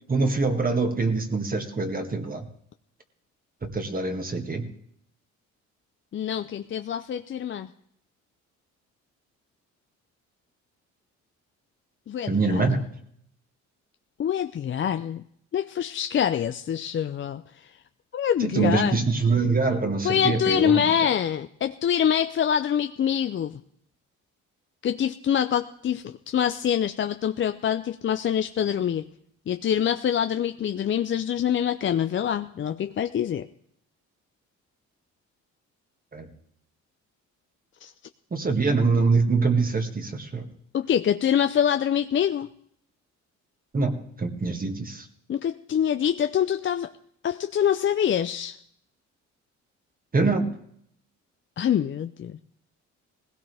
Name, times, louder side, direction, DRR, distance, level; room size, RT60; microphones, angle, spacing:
voice 1, 0.1-2.5 3.6-4.7 12.3-12.9 18.4-20.9 36.1-36.3 38.3-40.5 43.7-45.1 50.1-50.5, right 3 dB, 30° right, 5 dB, 1.9 m, -24 dB
voice 2, 6.1-7.7 12.1-12.7 14.2-15.2 15.5-17.8 18.1-19.0 20.0-23.6 24.8-29.0 29.5-33.5 37.8-37.9 40.7-42.5 45.3-46.9 47.2-48.6 51.6-52.4, left 9 dB, 40° left, 9 dB, 0.5 m, -25 dB
19.0 x 16.5 x 3.5 m, 0.68 s
cardioid pair, 90°, 30 cm